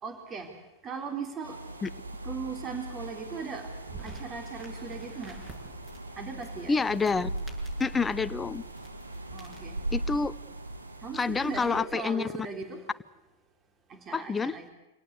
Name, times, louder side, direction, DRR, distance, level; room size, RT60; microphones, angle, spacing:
voice 1, 0.0-0.6 0.8-1.6 2.2-3.7 4.0-5.4 6.2-6.8 9.3-9.8 11.0-12.9 13.9-14.6, right 5 dB, 30° right, 5 dB, 4.1 m, -38 dB
sound 1, 1.4-11.8, right 1 dB, 90° right, 2.5 m, -39 dB
sound 2, 3.8-9.8, right 1 dB, 15° right, 6.8 m, -50 dB
voice 2, 6.7-7.3 7.8-8.6 9.9-10.3 11.1-12.3 14.1-14.6, left 4 dB, 15° left, 14 dB, 0.8 m, -28 dB
26.5 x 18.0 x 8.3 m, 0.91 s
figure-of-eight pair, 95°, 0 cm